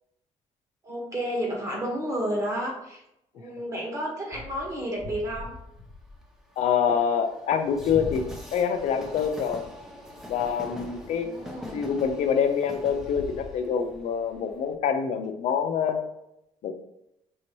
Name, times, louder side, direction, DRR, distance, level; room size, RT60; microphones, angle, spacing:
voice 1, 0.8-3.0 3.3-5.6 11.1-11.8, equal, 25° right, -2 dB, 1.4 m, -31 dB
Train, 4.3-14.7, left 1 dB, 5° right, 0.7 m, -42 dB
voice 2, 6.6-9.6 10.3-11.3 11.7-16.0 16.6-16.7, left 7 dB, 70° left, 8 dB, 0.6 m, -26 dB
6.2 x 2.9 x 3.0 m, 0.81 s
cardioid pair, 130°, 12 cm